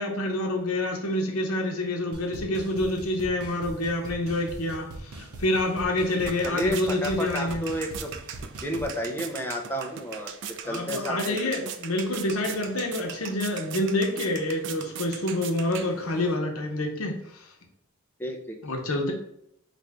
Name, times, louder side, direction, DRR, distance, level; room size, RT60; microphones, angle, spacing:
voice 1, 0.0-7.6 10.6-17.4 18.6-19.1, left 1 dB, 75° left, 2 dB, 0.9 m, -27 dB
sound 1, 2.1-9.0, right 2 dB, 90° right, 0.6 m, -41 dB
sound 2, 5.7-16.4, right 8 dB, 55° right, 0.4 m, -40 dB
voice 2, 6.4-8.2 8.6-11.4 18.2-18.8, equal, 10° left, 2 dB, 0.5 m, -32 dB
4.3 x 2.6 x 3.4 m, 0.76 s
head